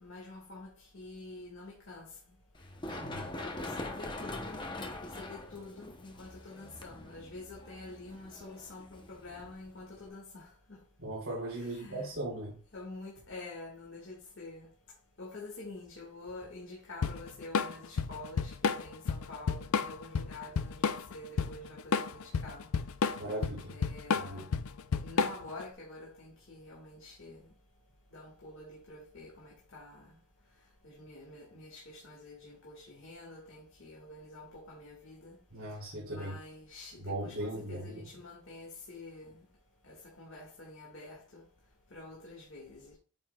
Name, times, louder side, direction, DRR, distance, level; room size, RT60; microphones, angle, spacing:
voice 1, 0.0-2.1 3.2-10.5 11.5-12.1 12.7-14.7 15.2-22.7 23.7-24.5 25.0-27.5 28.1-30.1 30.8-35.4 36.1-39.4 39.8-41.4 41.9-43.0, left 2 dB, 65° left, 1.9 m, -47 dB
Run, 2.5-10.1, left 1 dB, 20° left, 0.8 m, -43 dB
voice 2, 2.9-3.2 11.0-12.6 23.1-23.8 24.2-24.5 35.5-36.3 37.0-38.0, right 1 dB, 70° right, 2.9 m, -38 dB
Drum kit / Drum, 17.0-25.6, left 5 dB, 85° left, 0.5 m, -31 dB
8.8 x 6.2 x 2.3 m
head